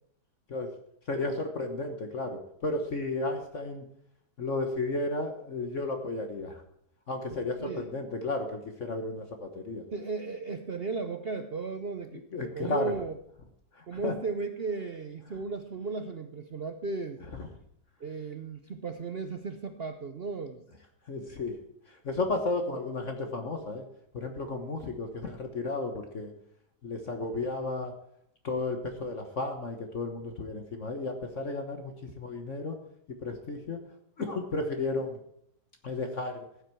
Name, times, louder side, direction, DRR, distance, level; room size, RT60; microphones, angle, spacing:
voice 1, 1.1-3.8 4.4-6.6 7.1-9.8 12.3-12.9 13.7-14.1 17.4-17.5 21.1-21.5 21.9-23.8 24.1-26.3 26.8-27.9 28.4-32.8 33.2-33.8 34.2-35.2 35.8-36.4, left 2 dB, 45° left, 5 dB, 1.4 m, -33 dB
voice 2, 7.6-7.9 9.9-12.2 12.5-13.1 13.9-17.2 18.0-20.6, right 4 dB, 55° right, 7 dB, 0.6 m, -35 dB
15.0 x 9.1 x 4.6 m, 0.72 s
omnidirectional pair, 2.0 m